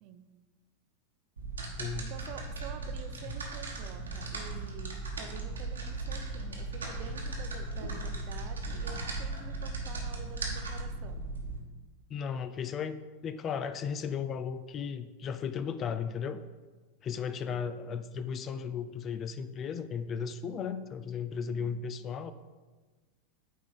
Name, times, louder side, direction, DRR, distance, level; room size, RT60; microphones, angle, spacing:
sound 1, 1.4-11.6, right 2 dB, 85° right, 1.3 m, -37 dB
voice 1, 2.0-11.2 17.5-17.7 21.5-21.8, right 8 dB, 50° right, 8 dB, 0.7 m, -48 dB
voice 2, 12.1-13.0 13.2-16.4 17.0-22.3, left 6 dB, 35° left, 11 dB, 0.4 m, -35 dB
9.4 x 3.7 x 4.1 m, 1.3 s
figure-of-eight pair, 90°, 0 cm